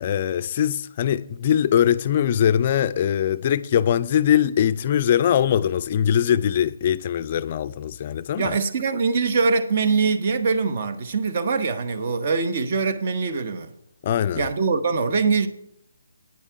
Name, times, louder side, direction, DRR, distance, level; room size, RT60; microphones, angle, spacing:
voice 1, 0.0-8.6 14.0-14.5, left 9 dB, 40° left, 0.3 m, -21 dB
voice 2, 8.4-13.7 14.3-15.5, right 4 dB, 45° right, 0.8 m, -23 dB
8.7 x 7.2 x 4.6 m
figure-of-eight pair, 150°, 0 cm